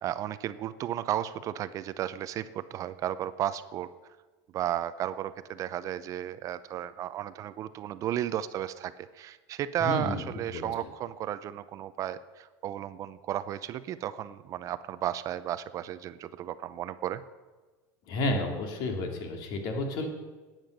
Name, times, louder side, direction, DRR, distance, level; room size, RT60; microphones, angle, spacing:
voice 1, 0.0-3.9 4.5-17.2, right 11 dB, 40° right, 14 dB, 0.6 m, -34 dB
voice 2, 9.8-10.2 10.5-10.9 18.1-20.1, left 1 dB, 55° left, 3 dB, 2.7 m, -31 dB
13.0 x 9.0 x 6.5 m, 1.3 s
supercardioid pair, 130°, 9 cm